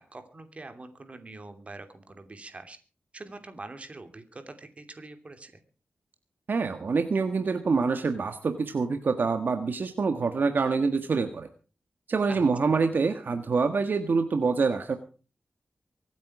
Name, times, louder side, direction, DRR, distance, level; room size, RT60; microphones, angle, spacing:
voice 1, 0.0-2.8 3.1-5.6 12.3-12.4, right 2 dB, 35° right, 8 dB, 2.8 m, -44 dB
voice 2, 6.5-11.5 12.1-15.0, right 4 dB, 65° right, 8 dB, 1.5 m, -26 dB
24.5 x 9.3 x 4.9 m, 0.36 s
wide cardioid pair, 110°, 4 cm